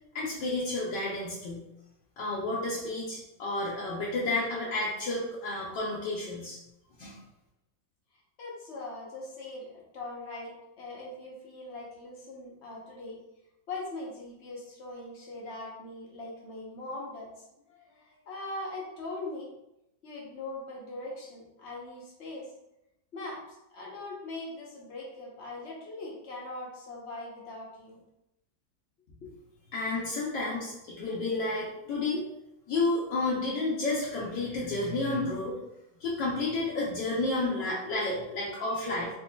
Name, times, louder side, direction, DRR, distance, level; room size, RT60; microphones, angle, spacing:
voice 1, 0.1-1.6 2.2-6.6 7.0-7.2 29.7-32.2 32.7-35.6 36.0-39.1, left 2 dB, 70° left, -6 dB, 1.3 m, -31 dB
voice 2, 8.4-13.2 13.7-17.3 17.7-19.5 20.0-22.5 23.1-28.0 29.2-29.3, left 2 dB, 50° left, -4 dB, 0.9 m, -41 dB
4.2 x 3.0 x 2.2 m, 0.87 s
omnidirectional pair, 2.1 m